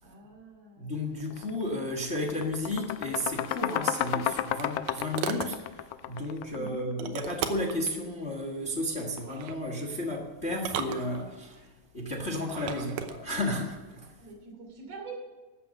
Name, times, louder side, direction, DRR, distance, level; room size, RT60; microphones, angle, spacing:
voice 1, 0.0-0.9 6.5-6.9 14.2-15.2, right 4 dB, 50° right, 0 dB, 3.9 m, -45 dB
voice 2, 0.8-14.1, left 1 dB, 60° left, 1 dB, 0.6 m, -33 dB
sound 1, 1.3-1.5 1.9-6.8, left 12 dB, 80° left, 1.8 m, -32 dB
sound 2, 3.8-5.6 7.0-7.8 9.2-9.6 10.5-11.6 12.4-13.2, right 8 dB, 90° right, 2.6 m, -36 dB
13.5 x 7.8 x 7.5 m, 1.2 s
omnidirectional pair, 3.9 m